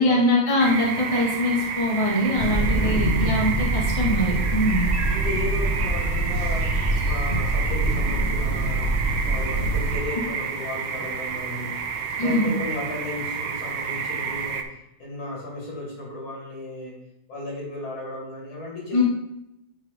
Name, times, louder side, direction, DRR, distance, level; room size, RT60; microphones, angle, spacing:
voice 1, 0.0-4.9 12.2-12.5 18.9-19.0, left 1 dB, 15° left, -3 dB, 1.4 m, -22 dB
sound 1, 0.6-14.6, right 6 dB, 75° right, 1.4 m, -30 dB
voice 2, 2.2-3.2 5.1-6.7 7.0-8.9 9.2-11.8 12.2-14.6 15.0-16.9 17.3-19.0, left 2 dB, 65° left, -3 dB, 3.2 m, -35 dB
sound 2, 2.4-10.0, right 1 dB, 50° right, 0.7 m, -24 dB
8.7 x 3.6 x 4.8 m, 0.85 s
omnidirectional pair, 2.4 m